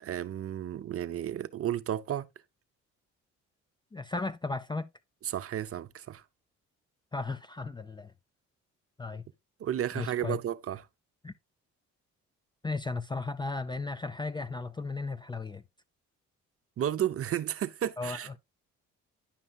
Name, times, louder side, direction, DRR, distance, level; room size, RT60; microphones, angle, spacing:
voice 1, 0.0-2.3 5.2-6.2 9.6-10.8 16.8-18.3, right 10 dB, 50° right, 0.6 m, -32 dB
voice 2, 3.9-4.9 7.1-8.1 9.0-9.2 9.9-10.4 11.2-11.3 12.6-15.6 18.0-18.4, left 3 dB, 15° left, 0.4 m, -35 dB
10.0 x 5.4 x 2.3 m
cardioid pair, 90°, 30 cm